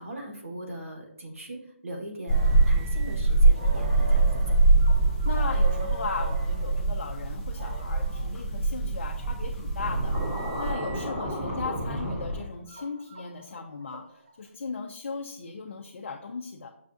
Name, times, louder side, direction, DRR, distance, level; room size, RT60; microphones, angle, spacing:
voice 1, 0.0-2.4 2.6-4.4, right 1 dB, 85° right, 0 dB, 1.3 m, -40 dB
sound 1, 2.3-10.7, right 3 dB, 5° left, 0.4 m, -24 dB
sound 2, 2.3-6.8 7.5-8.3 9.0-11.4 12.0-14.3, right 3 dB, 40° right, 0.6 m, -43 dB
voice 2, 5.2-10.3 10.6-16.7, left 4 dB, 60° left, 3 dB, 0.5 m, -37 dB
Scratching (performance technique), 9.8-12.4, equal, 20° right, 1.2 m, -32 dB
6.3 x 2.3 x 2.5 m, 0.69 s
hypercardioid pair, 165°, 7 cm